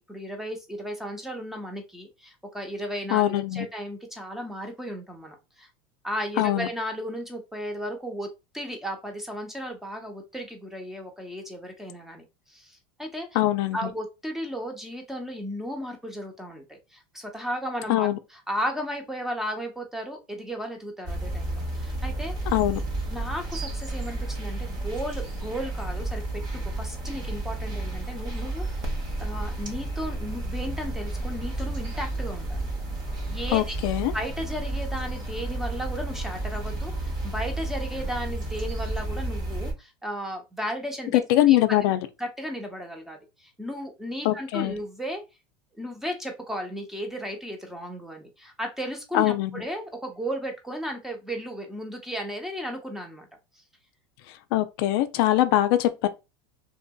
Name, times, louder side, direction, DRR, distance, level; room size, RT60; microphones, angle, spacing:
voice 1, 0.1-5.7 6.0-8.3 8.5-13.3 13.7-22.5 23.1-28.9 29.2-32.6 33.3-33.7 34.1-41.8 42.2-45.2 45.8-53.3, equal, 5° right, 0.7 m, -35 dB
voice 2, 3.1-3.7 6.4-6.7 13.4-13.8 17.9-18.2 22.5-22.8 33.5-34.1 41.1-42.0 44.2-44.7 49.1-49.6 54.5-56.1, left 14 dB, 65° left, 0.4 m, -22 dB
sound 1, 21.1-39.7, right 2 dB, 30° right, 0.9 m, -32 dB
2.8 x 2.5 x 2.3 m
supercardioid pair, 120°, 13 cm